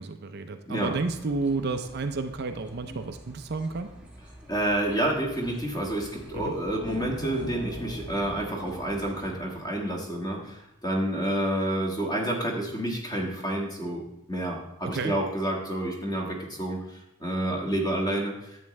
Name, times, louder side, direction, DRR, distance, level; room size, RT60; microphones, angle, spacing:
voice 1, 0.0-3.9 6.3-6.5 14.8-15.1, right 3 dB, 50° right, 7 dB, 0.5 m, -31 dB
sound 1, 0.8-9.3, right 1 dB, 5° right, 1.2 m, -48 dB
voice 2, 4.5-18.3, right 1 dB, 20° left, -1 dB, 1.5 m, -29 dB
sound 2, 5.9-10.3, equal, 85° left, 1.5 m, -43 dB
10.5 x 7.9 x 3.2 m, 0.86 s
head